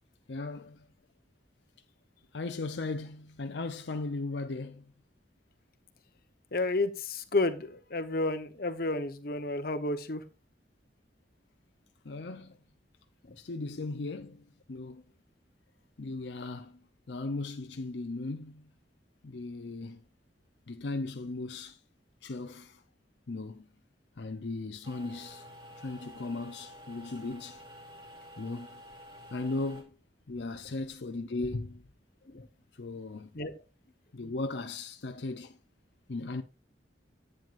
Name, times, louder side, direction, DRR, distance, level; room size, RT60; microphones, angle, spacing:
voice 1, 0.3-0.9 2.3-4.9 12.0-12.5 13.4-15.0 16.0-16.8 17.1-18.7 19.2-20.0 20.7-21.8 22.2-22.8 23.3-23.7 24.2-25.4 25.8-27.6 28.4-28.8 29.3-29.9 30.3-31.8 32.7-33.3 34.1-35.6 36.1-36.4, left 3 dB, 75° left, 0.7 m, -37 dB
voice 2, 6.5-10.2 13.3-13.4 32.3-32.5 33.3-33.6, left 2 dB, 55° left, 1.0 m, -31 dB
sound 1, 24.8-29.8, equal, 25° right, 2.6 m, -50 dB
10.5 x 9.0 x 2.5 m
head